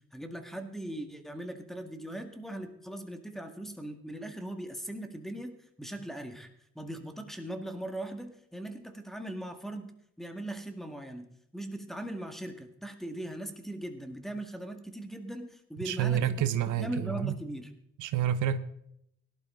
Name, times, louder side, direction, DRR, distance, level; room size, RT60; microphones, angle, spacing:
voice 1, 0.1-6.5 6.8-9.9 10.2-16.5 16.8-17.7, right 1 dB, ahead, 1.8 m, -39 dB
voice 2, 15.8-17.3 18.0-18.6, right 10 dB, 80° right, 0.9 m, -28 dB
17.5 x 11.5 x 3.7 m
cardioid pair, 90°, 30 cm